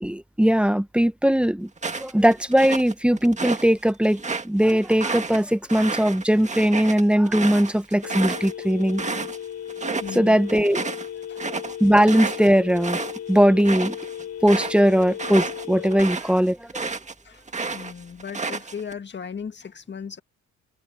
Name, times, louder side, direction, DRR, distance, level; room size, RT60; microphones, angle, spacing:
voice 1, 0.0-1.7 2.0-9.0 10.1-10.8 11.8-13.0 13.3-13.9 14.4-16.8, equal, 5° right, 1.2 m, -20 dB
sound 1, 1.8-3.7 4.0-9.4 9.7-10.2 10.5-17.1 17.5-18.9, right 4 dB, 25° right, 1.7 m, -31 dB
Telephone, 8.0-16.0, left 9 dB, 60° left, 7.7 m, -36 dB
voice 2, 10.0-10.4 11.3-11.4 17.2-17.4 17.7-20.2, left 6 dB, 35° left, 1.8 m, -36 dB
cardioid pair, 90°, 30 cm